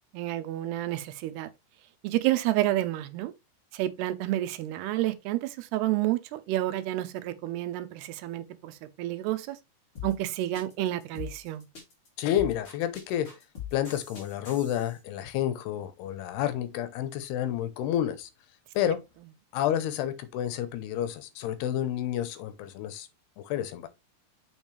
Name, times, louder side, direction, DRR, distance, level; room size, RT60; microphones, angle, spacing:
voice 1, 0.1-1.5 2.0-3.3 3.7-9.6 10.0-11.7, right 15 dB, 85° right, 2.8 m, -30 dB
sound 1, 10.0-15.0, left 8 dB, 30° left, 3.8 m, -42 dB
voice 2, 12.2-13.3 13.7-18.3 18.7-19.0 19.5-23.1 23.4-23.9, left 11 dB, 80° left, 3.0 m, -30 dB
7.2 x 6.2 x 3.2 m
omnidirectional pair, 4.7 m